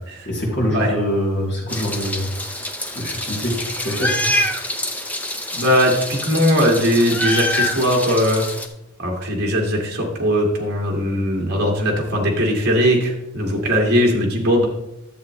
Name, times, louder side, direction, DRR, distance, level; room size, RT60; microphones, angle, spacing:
voice 1, 0.3-4.4, equal, 50° left, -3 dB, 3.0 m, -25 dB
Meow, 1.7-8.7, left 1 dB, 5° left, 0.6 m, -26 dB
voice 2, 5.5-8.5 9.0-14.7, equal, 45° right, -1 dB, 1.9 m, -19 dB
11.0 x 7.4 x 3.1 m, 0.90 s
head